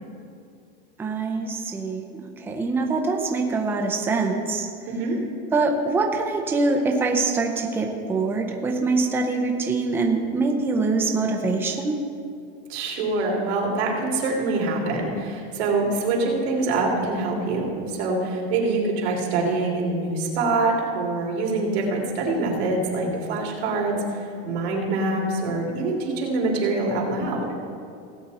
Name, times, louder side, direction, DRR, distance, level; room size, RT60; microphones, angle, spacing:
voice 1, 1.0-4.7 5.5-12.0, right 3 dB, 5° right, 2 dB, 0.6 m, -24 dB
voice 2, 4.9-5.2 12.7-27.4, right 3 dB, 85° right, -1 dB, 3.1 m, -25 dB
17.5 x 8.3 x 4.2 m, 2.4 s
supercardioid pair, 170°, 31 cm